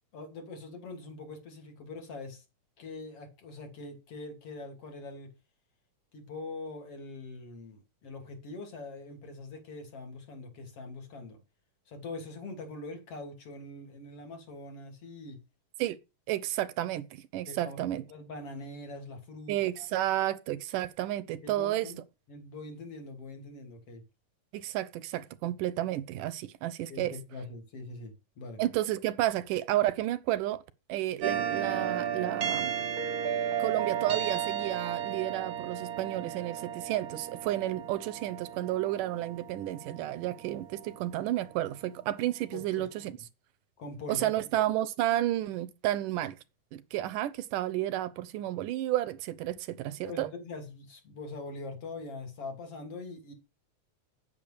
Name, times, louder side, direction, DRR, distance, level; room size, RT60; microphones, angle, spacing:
voice 1, 0.1-2.4 2.8-5.3 6.1-11.4 11.9-15.4 17.5-17.8 18.1-19.9 21.4-22.0 22.3-24.0 26.9-28.6 42.5-43.1 43.8-44.3 50.0-53.3, left 2 dB, 45° left, 3.8 m, -43 dB
voice 2, 16.3-18.0 19.5-21.9 24.5-27.2 28.6-30.6 30.9-32.8 33.6-43.1 44.1-46.4 46.7-50.3, right 14 dB, 85° right, 2.5 m, -31 dB
sound 1, 31.2-41.9, right 8 dB, 60° right, 0.9 m, -34 dB
9.3 x 8.8 x 6.7 m
omnidirectional pair, 3.7 m